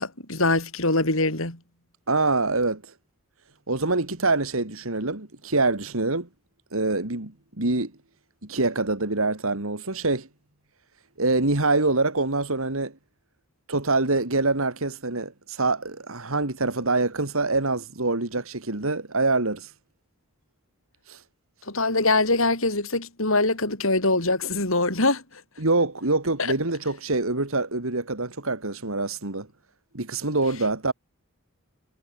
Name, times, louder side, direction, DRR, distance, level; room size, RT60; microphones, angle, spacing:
voice 1, 0.0-1.6 21.7-25.2, left 2 dB, 65° left, 6.2 m, -23 dB
voice 2, 2.1-2.9 3.7-6.3 6.7-7.9 8.4-10.3 11.2-12.9 13.7-19.7 21.1-21.2 25.6-29.5 29.9-30.9, right 3 dB, 65° right, 2.5 m, -25 dB
head